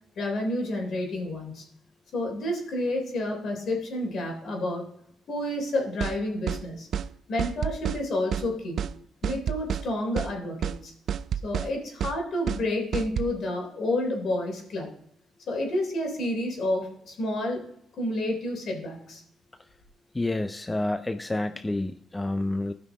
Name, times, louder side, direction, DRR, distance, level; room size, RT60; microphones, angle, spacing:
voice 1, 0.2-1.6 2.1-4.9 5.3-6.9 7.3-8.8 9.2-10.9 11.4-14.9 15.5-17.7 18.0-19.2, left 1 dB, 60° left, 1 dB, 3.5 m, -30 dB
sound 1, 6.0-6.2 6.5-6.6 6.9-7.1 7.4-8.0 8.3-8.5 8.8-8.9 9.2-9.9 10.2-10.3 10.6-10.8 11.1-11.7 12.0-12.2 12.5-12.6 12.9-13.3, right 8 dB, 65° right, 0.4 m, -29 dB
voice 2, 20.1-22.7, left 2 dB, 15° left, 9 dB, 0.5 m, -29 dB
16.0 x 6.0 x 3.5 m, 0.71 s
cardioid pair, 90°, 0 cm